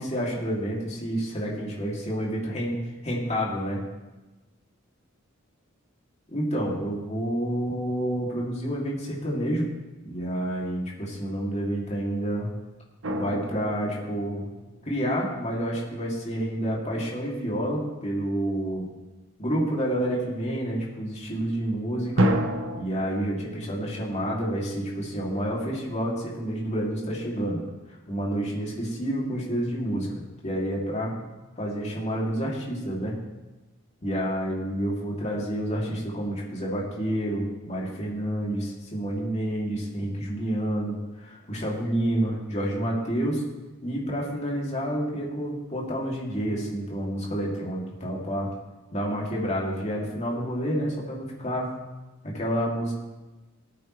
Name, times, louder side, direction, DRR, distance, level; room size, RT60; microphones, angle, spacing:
voice 1, 0.0-2.8 3.0-3.8 6.3-9.7 10.0-12.5 13.1-14.5 14.8-18.9 19.4-22.4 22.8-27.6 27.9-30.1 30.4-31.2 31.6-33.2 34.0-43.4 43.8-48.5 48.9-51.8 52.2-52.9, equal, 35° left, -4 dB, 2.9 m, -29 dB
sound 1, 13.0-15.1 22.2-22.8, right 1 dB, 70° right, 1.1 m, -28 dB
19.5 x 8.8 x 3.3 m, 1.1 s
head